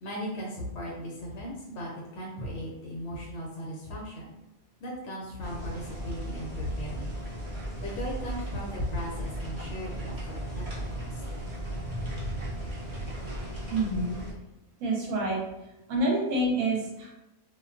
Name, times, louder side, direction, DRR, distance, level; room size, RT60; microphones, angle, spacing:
voice 1, 0.0-4.3 4.8-7.1 7.8-10.6 11.0-11.2, equal, 65° left, -3 dB, 0.8 m, -37 dB
sound 1, 5.4-14.3, right 1 dB, 60° right, 0.3 m, -36 dB
voice 2, 13.7-14.1 14.8-15.4 15.9-17.1, right 1 dB, 80° right, -2 dB, 1.1 m, -27 dB
2.4 x 2.3 x 2.3 m, 0.94 s
omnidirectional pair, 1.5 m